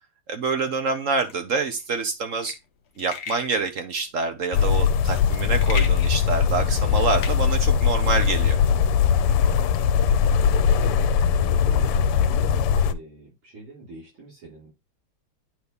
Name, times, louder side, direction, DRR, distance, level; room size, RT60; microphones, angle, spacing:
voice 1, 0.3-2.6 3.0-8.6, right 4 dB, 50° right, 1.0 m, -26 dB
sound 1, 1.2-8.3, left 6 dB, 60° left, 0.7 m, -39 dB
sound 2, 4.5-12.9, left 7 dB, 90° left, 1.5 m, -20 dB
voice 2, 9.4-9.8 10.6-10.9 11.3-14.7, right 3 dB, 70° right, 5.4 m, -44 dB
9.6 x 4.2 x 3.5 m
omnidirectional pair, 2.4 m